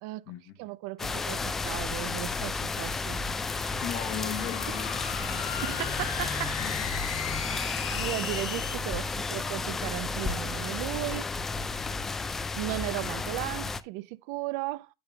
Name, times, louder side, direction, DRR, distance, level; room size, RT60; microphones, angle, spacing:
voice 1, 0.6-3.2 5.0-5.2 5.6-6.6 6.9-7.4 7.9-11.3 12.5-14.9, right 18 dB, 60° right, 0.4 m, -36 dB
sound 1, 1.0-13.8, left 4 dB, 15° left, 0.4 m, -32 dB
sound 2, 3.4-8.8, left 8 dB, 90° left, 1.5 m, -37 dB
voice 2, 3.8-5.8 6.6-7.0 11.8-12.3, left 9 dB, 50° left, 1.1 m, -39 dB
8.6 x 8.0 x 2.3 m
supercardioid pair, 140°, 2 cm